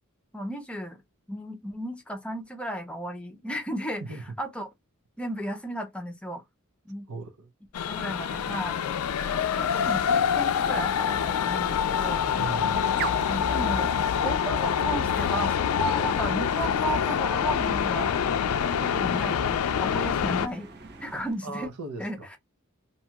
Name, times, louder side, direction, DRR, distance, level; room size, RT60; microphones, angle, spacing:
voice 1, 0.3-1.0 1.3-4.0 4.4-4.7 5.2-6.4 6.9-7.1 7.9-8.8 9.3-12.2 13.2-18.2 18.8-20.7 21.0-21.7 22.0-22.4, equal, 5° left, 0.5 m, -34 dB
voice 2, 7.1-7.5 12.2-12.8 21.4-22.4, right 3 dB, 90° right, 0.7 m, -38 dB
sound 1, 7.7-20.5, left 8 dB, 80° left, 0.4 m, -26 dB
sound 2, 8.0-21.4, right 6 dB, 50° right, 0.4 m, -44 dB
sound 3, 15.9-21.3, right 2 dB, 20° right, 0.8 m, -47 dB
2.8 x 2.3 x 2.8 m
head